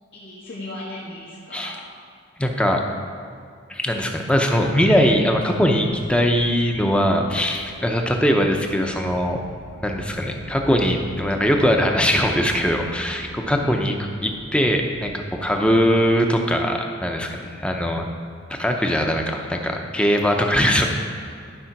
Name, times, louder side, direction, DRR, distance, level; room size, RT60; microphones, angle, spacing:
voice 1, 0.1-1.8 13.6-13.9 17.4-17.5, left 1 dB, 65° left, -8 dB, 1.8 m, -37 dB
voice 2, 2.4-2.8 3.7-9.4 9.8-13.9 14.2-18.1 18.5-20.9, equal, 5° left, 2 dB, 0.7 m, -21 dB
sound 1, 4.6-16.0, right 1 dB, 80° right, 0.9 m, -43 dB
13.0 x 4.9 x 5.9 m, 2.3 s
head